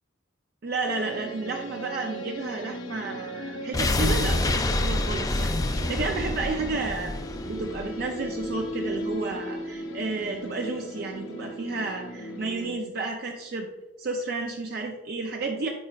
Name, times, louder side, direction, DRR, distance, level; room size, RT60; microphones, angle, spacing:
voice 1, 0.6-7.1 7.5-13.7 14.0-15.7, right 3 dB, 50° right, 2 dB, 0.5 m, -32 dB
sound 1, 0.8-12.7, equal, 80° left, 0.8 m, -37 dB
sound 2, 3.7-8.7 9.0-9.1, left 2 dB, 20° left, 0.3 m, -27 dB
8.4 x 5.0 x 2.4 m, 1.1 s
head